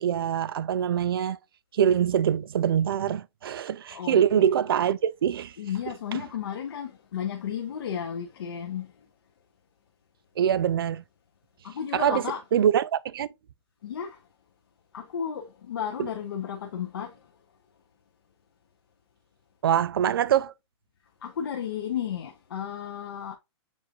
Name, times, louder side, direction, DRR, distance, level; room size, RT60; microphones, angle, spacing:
voice 1, 0.0-1.4 1.7-5.6 6.1-6.2 10.4-11.0 11.9-12.2 12.5-13.3 19.6-20.5, right 9 dB, 55° right, 0.4 m, -24 dB
voice 2, 3.9-4.4 5.6-8.9 11.6-12.4 13.8-14.2 14.9-17.1 21.2-23.4, left 8 dB, 55° left, 0.8 m, -33 dB
7.1 x 2.5 x 2.8 m
hypercardioid pair, 180°, 15 cm